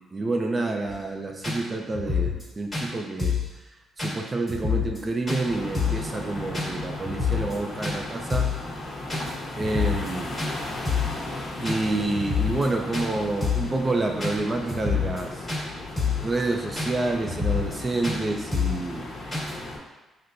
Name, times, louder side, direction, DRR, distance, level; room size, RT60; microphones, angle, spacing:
voice 1, 0.0-3.4 4.0-8.5 9.6-10.3 11.6-15.5 16.2-19.1, right 2 dB, 30° right, 2 dB, 0.5 m, -28 dB
sound 1, 0.9-1.0 1.4-1.6 1.9-2.5 2.7-2.9 3.2-3.5 4.0-4.1 4.5-5.0 5.3-5.4 5.7-6.1 6.5-6.7 7.0-7.6 7.8-8.0 8.3-8.6 9.1-9.3 9.6-10.1 10.4-10.5 10.9-11.2 11.7-11.8 12.1-12.7 12.9-13.1 13.4-13.7 14.2-14.4 14.7-15.2 15.5-15.6 16.0-16.3 16.8-16.9 17.2-17.8 18.0-18.2 18.5-18.8 19.3-19.5, left 5 dB, 15° left, 1.5 m, -27 dB
sound 2, 5.4-19.8, left 2 dB, 55° left, 0.9 m, -36 dB
6.0 x 2.1 x 2.6 m, 1.1 s
cardioid pair, 90°, 0 cm